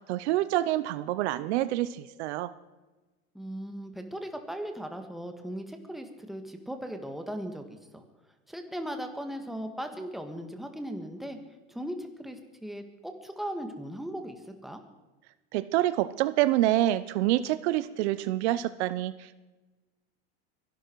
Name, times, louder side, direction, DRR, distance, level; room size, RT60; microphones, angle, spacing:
voice 1, 0.1-2.5 15.5-19.1, right 14 dB, 80° right, 15 dB, 0.8 m, -27 dB
voice 2, 3.3-8.0 8.5-11.4 11.7-14.8, equal, ahead, 5 dB, 1.8 m, -38 dB
23.5 x 12.0 x 4.7 m, 1.2 s
supercardioid pair, 130°, 33 cm